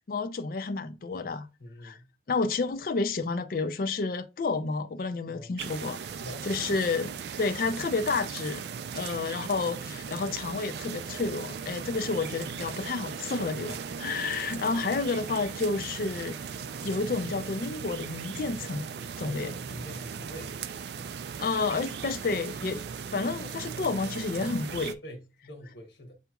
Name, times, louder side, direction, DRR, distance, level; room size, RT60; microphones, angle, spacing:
voice 1, 0.1-1.5 1.8-2.0 2.3-6.0 6.4-8.6 8.9-16.4 16.8-18.9 19.2-19.5 21.4-22.8 23.1-25.0, left 4 dB, 50° left, 0.4 m, -30 dB
voice 2, 1.6-2.1 5.3-5.5 6.1-6.7 9.0-9.3 13.5-14.1 19.2-20.6 25.0-26.1, equal, 90° left, 1.1 m, -45 dB
sound 1, 5.6-24.9, right 6 dB, 65° right, 0.3 m, -38 dB
8.0 x 2.9 x 2.3 m
head